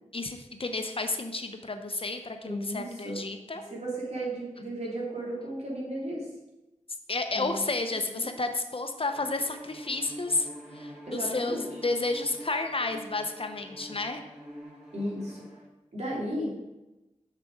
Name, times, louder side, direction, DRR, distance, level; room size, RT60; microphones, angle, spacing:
voice 1, 0.1-3.6 7.1-10.5 10.7-14.2, left 3 dB, 45° left, 6 dB, 0.8 m, -31 dB
voice 2, 2.4-3.2 3.6-6.3 7.3-7.6 8.1-8.3 11.1-11.6 14.9-15.4 15.9-16.7, right 1 dB, 55° right, -4 dB, 3.3 m, -34 dB
Bowed string instrument, 9.1-15.7, equal, 5° right, 3.3 m, -46 dB
6.8 x 6.7 x 4.7 m, 1.0 s
wide cardioid pair, 60°, 13 cm